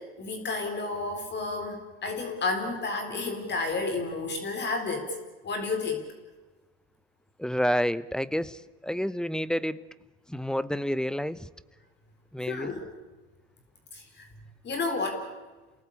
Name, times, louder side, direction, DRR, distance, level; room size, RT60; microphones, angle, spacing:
voice 1, 0.0-5.1 5.4-6.1 12.5-12.9 13.9-14.3 14.6-15.3, left 3 dB, 35° left, 6 dB, 4.1 m, -31 dB
voice 2, 7.4-9.8 10.3-11.5 12.3-12.7, equal, ahead, 18 dB, 0.8 m, -29 dB
28.5 x 18.5 x 8.5 m, 1.3 s
hypercardioid pair, 85°, 31 cm